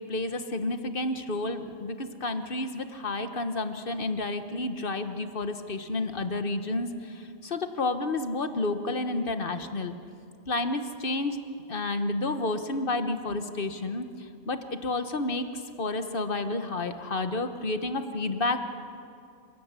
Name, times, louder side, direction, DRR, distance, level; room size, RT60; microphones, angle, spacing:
voice 1, 0.1-9.9 10.5-11.4 11.7-18.7, left 2 dB, 55° left, 9 dB, 1.4 m, -30 dB
27.5 x 16.0 x 8.3 m, 2.5 s
omnidirectional pair, 1.1 m